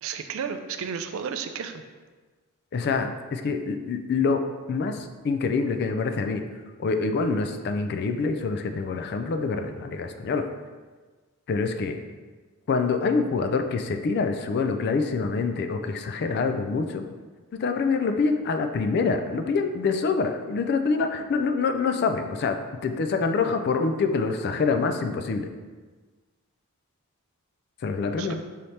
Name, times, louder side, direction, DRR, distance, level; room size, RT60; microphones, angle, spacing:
voice 1, 0.0-1.8 28.2-28.4, right 6 dB, 65° right, 8 dB, 0.3 m, -33 dB
voice 2, 2.7-4.4 4.7-6.4 6.8-10.5 11.5-12.0 12.7-17.0 17.5-22.6 22.8-25.5 27.8-28.4, left 4 dB, 45° left, 7 dB, 0.3 m, -26 dB
5.4 x 2.8 x 3.2 m, 1.4 s
head